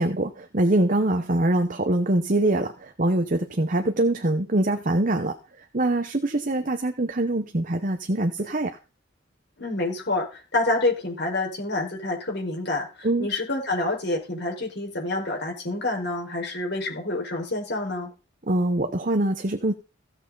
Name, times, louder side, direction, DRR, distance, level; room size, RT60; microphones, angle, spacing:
voice 1, 0.0-5.4 5.7-8.8 13.0-13.3 18.5-19.7, right 1 dB, 40° right, 6 dB, 1.0 m, -23 dB
voice 2, 9.6-18.1, left 2 dB, 55° left, 0 dB, 5.2 m, -28 dB
16.0 x 7.3 x 4.0 m, 0.32 s
head